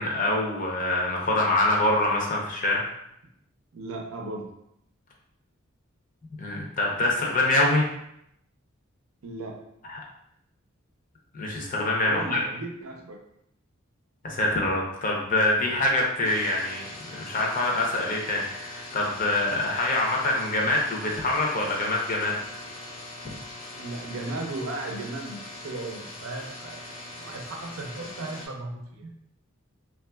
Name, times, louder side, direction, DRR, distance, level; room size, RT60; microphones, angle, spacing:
voice 1, 0.0-2.9 6.4-7.9 9.9-10.0 11.3-12.4 14.2-22.3 23.2-23.4, left 2 dB, 40° left, -1 dB, 0.6 m, -25 dB
voice 2, 3.7-4.5 9.2-9.6 12.0-13.2 23.7-26.8 27.2-29.1, right 2 dB, 75° right, 1 dB, 0.5 m, -36 dB
sound 1, 16.2-28.5, left 2 dB, 70° left, 0.8 m, -41 dB
3.3 x 2.4 x 2.2 m, 0.76 s
head